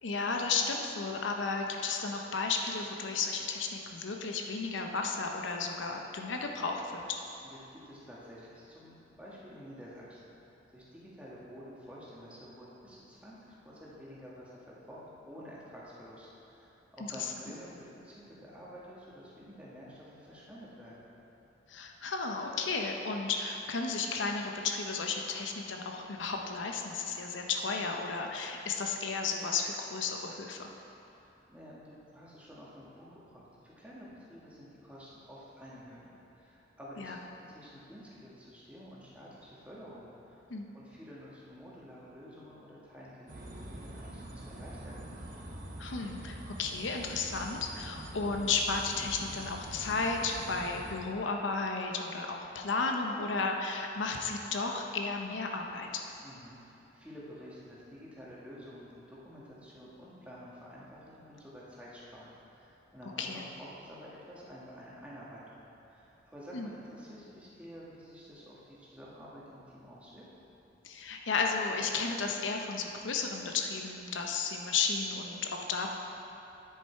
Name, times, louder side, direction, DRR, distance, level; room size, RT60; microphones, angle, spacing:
voice 1, 0.0-7.0 21.7-30.7 37.0-37.2 40.5-40.7 45.8-56.0 63.2-63.4 66.5-66.7 70.8-76.0, left 4 dB, 85° left, 2 dB, 0.7 m, -33 dB
voice 2, 7.4-10.3 10.7-21.0 31.1-37.1 37.5-40.4 40.7-45.0 56.2-65.6 65.9-70.2, equal, 5° right, -7 dB, 1.5 m, -50 dB
sound 1, 43.3-50.9, right 1 dB, 45° right, 0.9 m, -45 dB
9.6 x 6.8 x 4.5 m, 2.9 s
head